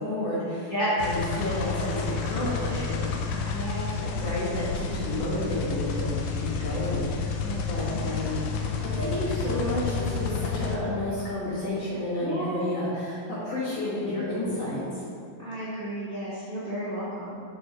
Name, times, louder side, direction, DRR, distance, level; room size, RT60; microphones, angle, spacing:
voice 1, 0.0-0.7 1.0-3.6 4.1-7.3 7.7-8.3 8.8-15.0, left 1 dB, 50° left, -10 dB, 3.1 m, -31 dB
sound 1, 1.0-10.8, left 5 dB, 75° left, 2.2 m, -30 dB
voice 2, 3.3-4.3 7.4-8.0 12.2-12.6 15.4-17.4, right 1 dB, 25° right, -12 dB, 1.6 m, -34 dB
6.5 x 6.0 x 5.0 m, 2.3 s
omnidirectional pair, 3.9 m